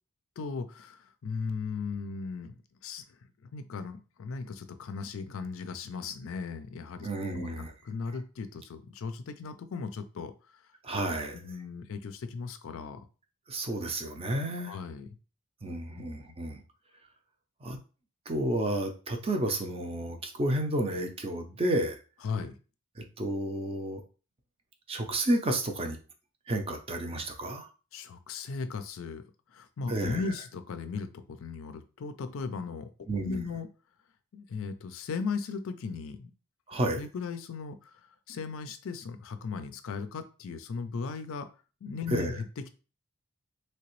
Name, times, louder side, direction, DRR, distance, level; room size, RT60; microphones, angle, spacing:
voice 1, 0.4-10.6 11.3-13.1 14.6-15.1 15.9-16.4 22.2-22.6 27.9-29.2 29.5-32.9 33.2-33.7 34.3-36.3 37.0-38.0 38.3-41.5 41.8-42.5, left 4 dB, 65° left, 10 dB, 0.4 m, -37 dB
voice 2, 7.0-7.7 10.8-11.4 13.5-14.8 15.6-16.6 17.6-17.8 18.3-22.0 23.0-24.0 24.9-26.0 26.5-27.7 29.9-30.2 33.1-33.5 36.7-37.0 42.1-42.4, right 1 dB, 25° right, 4 dB, 0.5 m, -31 dB
3.2 x 2.9 x 3.0 m, 0.34 s
head